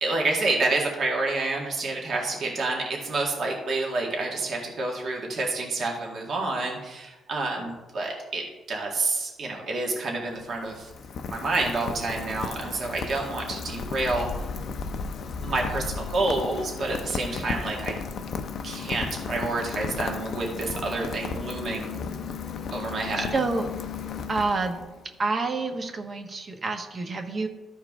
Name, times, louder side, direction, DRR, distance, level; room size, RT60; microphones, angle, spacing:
voice 1, 0.0-8.4 8.7-10.9 11.3-14.3 15.4-18.0 18.6-22.0 22.7-23.3, right 3 dB, 55° right, -1 dB, 1.9 m, -28 dB
Rain, 10.2-25.0, left 5 dB, 65° left, 0.6 m, -34 dB
voice 2, 23.2-23.7 24.3-24.8 25.2-27.5, right 3 dB, 40° right, 5 dB, 1.1 m, -28 dB
13.5 x 4.7 x 3.6 m, 1.1 s
cardioid pair, 90°, 0 cm